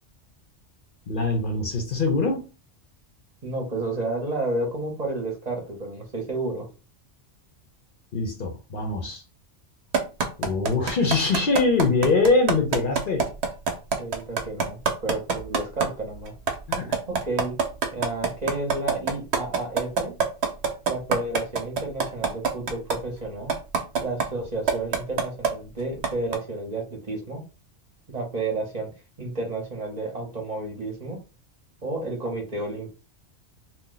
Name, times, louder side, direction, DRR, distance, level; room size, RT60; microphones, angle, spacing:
voice 1, 1.1-2.5 8.1-9.2 10.4-13.3 16.7-17.0, left 3 dB, 55° left, 3 dB, 0.8 m, -23 dB
voice 2, 3.4-6.7 14.0-16.3 17.1-17.5 17.9-20.1 20.9-23.5 24.0-27.4 28.1-28.9 29.2-31.2 31.8-32.9, right 2 dB, 40° right, 0 dB, 0.8 m, -31 dB
sound 1, 9.9-15.9 16.3-22.9 23.5-24.2 24.7-25.5 26.0-26.3, right 5 dB, 70° right, 0.9 m, -23 dB
2.7 x 2.2 x 3.8 m, 0.33 s
omnidirectional pair, 1.2 m